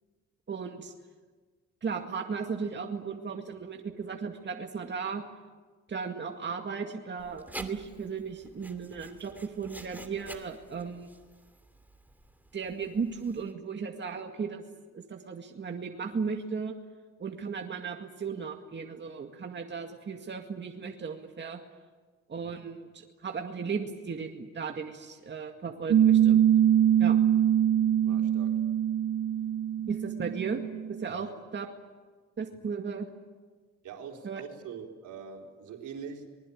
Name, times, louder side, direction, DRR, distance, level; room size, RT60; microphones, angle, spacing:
voice 1, 0.5-0.9 1.8-5.2 5.9-11.1 12.5-14.6 14.9-16.7 17.2-21.6 22.3-26.4 27.0-27.2 29.9-30.6 30.9-31.7 32.4-33.1 34.2-34.4, right 5 dB, 35° right, 3 dB, 2.2 m, -36 dB
Writing, 7.2-13.5, right 1 dB, 5° right, 2.7 m, -48 dB
Piano, 25.9-31.0, right 10 dB, 55° right, 1.2 m, -23 dB
voice 2, 28.0-28.6 31.0-31.4 33.8-36.4, right 6 dB, 80° right, 2 dB, 4.1 m, -44 dB
25.5 x 21.0 x 8.7 m, 1.4 s
cardioid pair, 90°, 30 cm